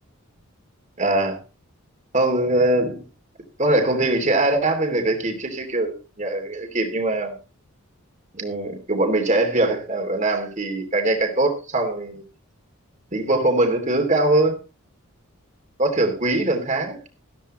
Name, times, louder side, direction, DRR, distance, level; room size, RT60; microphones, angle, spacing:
voice 1, 1.0-1.4 2.1-3.0 3.6-5.9 6.2-7.3 8.3-12.2 13.1-14.6 15.8-17.1, right 2 dB, 35° right, 4 dB, 3.0 m, -22 dB
14.5 x 13.5 x 3.2 m, 0.31 s
head